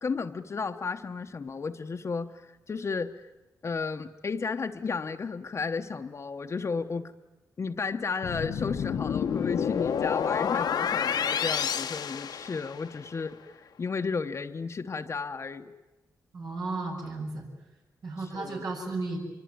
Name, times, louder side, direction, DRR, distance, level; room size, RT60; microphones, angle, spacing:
voice 1, 0.0-2.3 2.7-3.1 3.6-7.1 7.6-15.7 18.3-18.6, left 4 dB, 45° left, 6 dB, 1.0 m, -33 dB
sound 1, 8.2-13.0, left 7 dB, 85° left, 1.2 m, -29 dB
voice 2, 16.3-17.5 18.0-19.2, right 3 dB, 75° right, 0 dB, 7.3 m, -34 dB
25.0 x 24.0 x 9.4 m, 1.0 s
wide cardioid pair, 110°, 7 cm